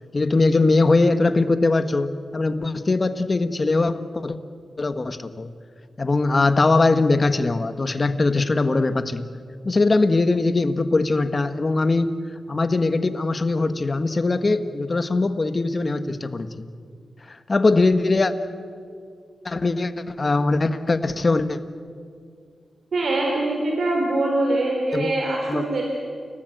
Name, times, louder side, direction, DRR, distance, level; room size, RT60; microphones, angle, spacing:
voice 1, 0.1-4.4 4.8-5.5 6.0-9.3 9.6-12.1 12.5-16.6 17.3-18.3 19.4-21.6 24.9-25.1 25.5-25.6, left 3 dB, 40° left, 10 dB, 1.5 m, -21 dB
voice 2, 22.9-25.8, right 2 dB, 70° right, 0 dB, 4.2 m, -23 dB
29.5 x 18.0 x 8.0 m, 2.2 s
cardioid pair, 65°, 0 cm